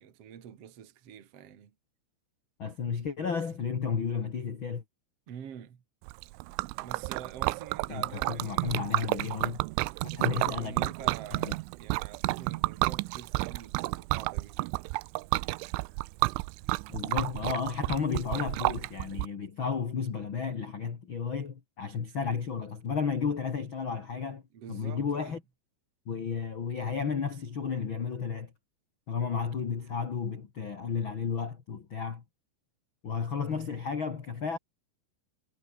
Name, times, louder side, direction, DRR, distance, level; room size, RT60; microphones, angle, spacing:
voice 1, 0.0-1.7 5.3-5.8 6.8-8.9 10.0-14.6 24.5-25.4, right 9 dB, 40° right, 2.5 m, -46 dB
voice 2, 2.6-4.8 7.9-9.6 10.0-10.9 11.4-11.5 16.9-24.4 24.7-25.4 26.1-28.5 29.1-32.2 33.0-34.6, left 6 dB, 45° left, 1.6 m, -33 dB
Liquid, 6.1-19.3, right 24 dB, 85° right, 3.0 m, -31 dB
omnidirectional pair, 5.4 m